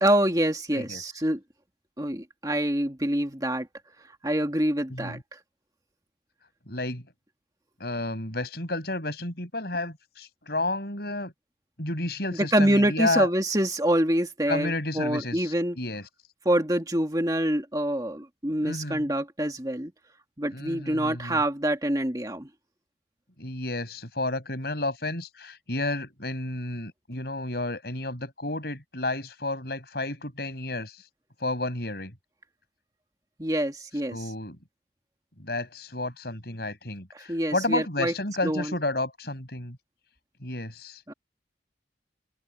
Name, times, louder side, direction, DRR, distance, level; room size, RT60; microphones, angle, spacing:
voice 1, 0.0-1.4 2.0-3.7 4.2-5.2 12.5-15.8 16.5-19.9 20.4-22.5 33.4-34.3 37.1-38.1 38.4-38.7 41.1-41.2, right 1 dB, 20° right, 1.9 m, -26 dB
voice 2, 4.9-5.2 6.7-7.0 7.8-11.3 11.8-13.3 14.5-16.0 18.6-19.1 20.5-21.4 23.4-31.0 31.4-32.1 34.1-34.6 35.4-39.8 40.4-41.0, left 2 dB, 60° left, 6.9 m, -31 dB
open air
head